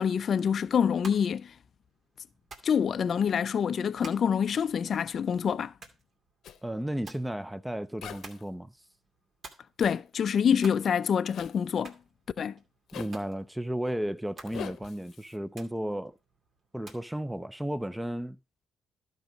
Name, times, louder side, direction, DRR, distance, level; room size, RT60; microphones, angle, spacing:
voice 1, 0.0-1.5 2.6-5.7 9.8-11.9 12.4-12.5, left 7 dB, 55° left, 0.4 m, -26 dB
sound 1, 0.8-17.1, right 3 dB, 55° right, 2.4 m, -54 dB
Zipper (clothing), 6.4-6.6 8.0-8.4 9.8-10.0 11.3-11.6 12.9-13.2 14.5-15.4, left 9 dB, 70° left, 0.8 m, -42 dB
voice 2, 6.6-8.7 12.9-16.2 16.7-18.4, right 1 dB, 5° right, 0.5 m, -34 dB
12.0 x 5.4 x 5.1 m
cardioid pair, 90°, 0 cm